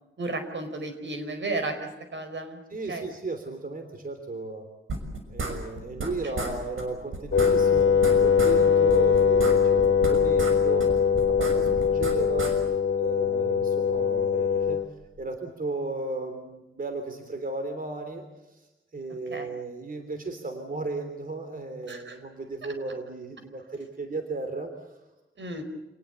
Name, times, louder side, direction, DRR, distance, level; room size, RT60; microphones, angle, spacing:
voice 1, 0.2-2.6 2.9-3.1 19.3-19.5 21.9-22.2 25.4-25.6, right 2 dB, 65° right, 7 dB, 5.0 m, -33 dB
voice 2, 2.7-4.7 5.3-10.9 11.2-14.8 15.2-18.7 18.9-25.0, right 3 dB, 45° right, 6 dB, 3.3 m, -35 dB
sound 1, 4.9-6.1 6.4-6.5 6.8-6.9 7.1-8.6 8.9-10.5 10.8-12.5, right 3 dB, 85° right, 6.3 m, -33 dB
Wind instrument woodwind instrument, 7.3-14.9, left 6 dB, 80° left, 2.1 m, -22 dB
28.0 x 19.5 x 8.2 m, 1.0 s
wide cardioid pair, 105°, 20 cm